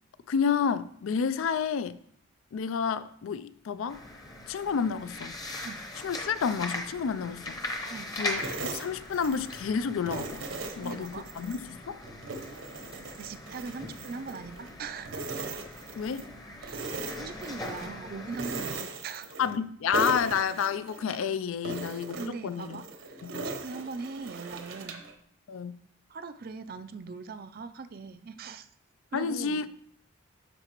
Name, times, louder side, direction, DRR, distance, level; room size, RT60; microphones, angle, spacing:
voice 1, 0.3-2.0 2.5-4.0 4.5-5.3 6.0-7.6 8.2-10.4 10.8-12.0 16.0-16.3 19.4-22.8 23.2-23.4 25.5-25.8 29.1-29.7, left 6 dB, 75° left, 0.4 m, -30 dB
sound 1, 3.9-18.7, left 1 dB, 20° left, 0.8 m, -40 dB
sound 2, 8.4-9.7 10.1-11.6 12.0-14.7 15.1-16.3 16.6-17.9 18.3-19.7 19.9-21.2 21.6-25.1, right 3 dB, 70° right, 0.9 m, -39 dB
voice 2, 10.8-11.2 13.1-15.3 16.6-19.3 21.7-25.0 26.1-28.7 29.1-29.6, right 4 dB, 45° right, 0.4 m, -41 dB
12.0 x 4.9 x 3.0 m
head